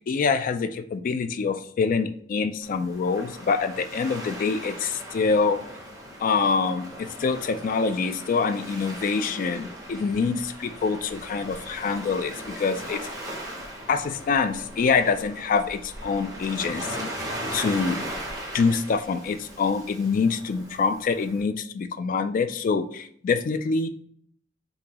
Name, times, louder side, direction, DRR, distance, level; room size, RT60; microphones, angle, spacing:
voice 1, 0.1-5.6 6.2-13.0 13.9-17.1 17.5-18.0 18.5-23.9, left 5 dB, 45° left, 10 dB, 0.3 m, -25 dB
Waves surf, 2.6-21.4, right 1 dB, 20° right, 0.8 m, -38 dB
3.8 x 2.7 x 2.9 m, 0.62 s
head